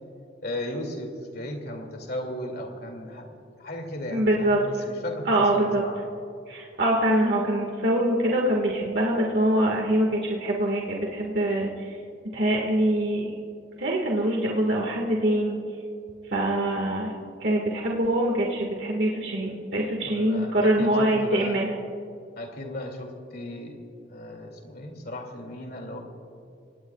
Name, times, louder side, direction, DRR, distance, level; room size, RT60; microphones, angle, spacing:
voice 1, 0.4-6.0 20.0-21.7 22.4-23.8 24.1-26.0, left 1 dB, 55° left, 3 dB, 2.5 m, -36 dB
voice 2, 4.1-4.6 5.3-5.8 6.5-12.0 12.3-13.3 13.8-15.6 16.3-17.1 17.4-21.7, right 1 dB, 60° right, -2 dB, 1.8 m, -24 dB
26.0 x 18.0 x 2.4 m, 2.6 s
head